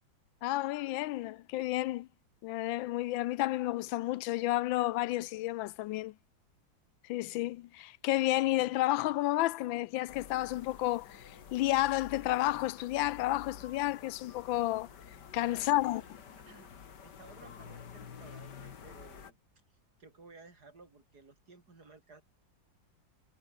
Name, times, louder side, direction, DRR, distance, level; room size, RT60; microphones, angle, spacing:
voice 1, 0.4-2.1 2.4-6.1 7.0-14.9 15.3-16.0, left 16 dB, 85° left, 1.4 m, -31 dB
sound 1, 10.1-19.3, left 7 dB, 60° left, 2.3 m, -50 dB
voice 2, 15.3-16.0 16.4-16.7 17.0-19.4 19.7-22.2, right 3 dB, 55° right, 4.3 m, -56 dB
omnidirectional pair, 2.1 m